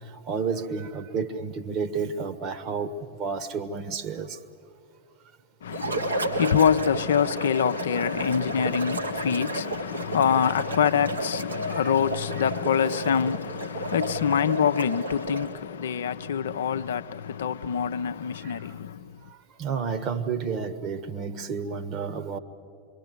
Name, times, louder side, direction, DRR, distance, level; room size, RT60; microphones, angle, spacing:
voice 1, 0.3-2.9 3.2-4.4 19.6-22.4, right 5 dB, 35° right, 1.5 m, -30 dB
voice 2, 5.6-19.2, left 8 dB, 60° left, 0.7 m, -25 dB
sound 1, 5.7-15.6, right 2 dB, 80° right, 1.8 m, -32 dB
26.5 x 24.0 x 8.0 m
figure-of-eight pair, 90°, 0 cm